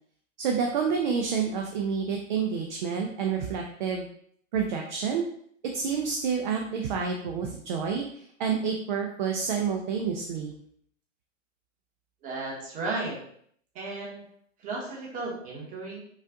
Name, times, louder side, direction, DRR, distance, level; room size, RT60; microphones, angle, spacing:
voice 1, 0.4-4.1 4.5-5.2 5.7-10.5, right 6 dB, 40° right, 1 dB, 0.5 m, -29 dB
voice 2, 12.2-13.2 13.7-14.2 14.6-16.0, right 3 dB, 20° right, -3 dB, 1.2 m, -34 dB
5.5 x 2.4 x 3.6 m, 0.65 s
hypercardioid pair, 150°, 39 cm